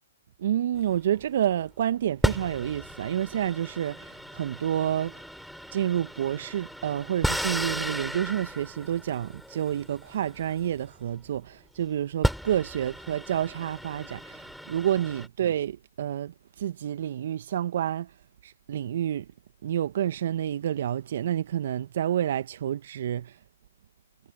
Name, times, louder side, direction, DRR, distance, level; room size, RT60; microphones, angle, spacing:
voice 1, 0.4-5.2 5.7-18.1 18.4-19.2 19.6-23.3, right 10 dB, 55° right, 1.5 m, -29 dB
sound 1, 0.8-1.5 2.2-11.4 11.8-11.9 12.2-15.3, equal, ahead, 7.8 m, -34 dB
figure-of-eight pair, 125°, 0 cm